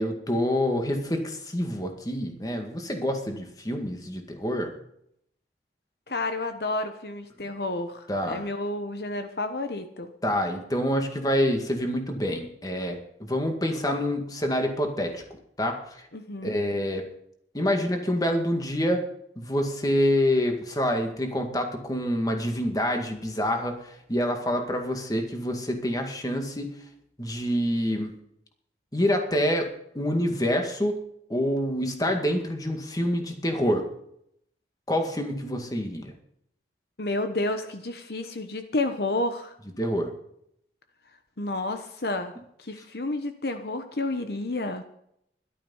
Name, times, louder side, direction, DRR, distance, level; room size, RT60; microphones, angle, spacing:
voice 1, 0.0-4.7 8.1-8.4 10.2-15.2 15.6-16.1 16.4-17.0 17.5-19.0 19.4-26.8 27.2-28.1 28.9-29.7 29.9-31.0 31.3-33.9 34.9-36.1 39.8-40.1, equal, 20° left, 4 dB, 2.0 m, -27 dB
voice 2, 6.1-10.1 16.1-16.6 37.0-39.6 41.4-44.8, left 2 dB, 65° left, 8 dB, 1.1 m, -30 dB
13.5 x 12.0 x 5.6 m, 0.72 s
head